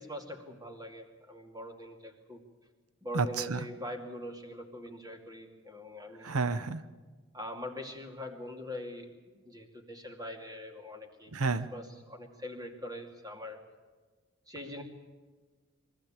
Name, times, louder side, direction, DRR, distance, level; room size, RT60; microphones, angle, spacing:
voice 1, 0.0-2.4 3.0-6.4 7.3-9.1 9.4-11.3 11.7-13.6 14.5-14.8, left 1 dB, 15° right, 3 dB, 2.5 m, -43 dB
voice 2, 3.1-3.7 6.2-6.8 11.3-11.7, right 4 dB, 90° right, 13 dB, 0.8 m, -30 dB
23.0 x 15.0 x 8.8 m, 1.4 s
head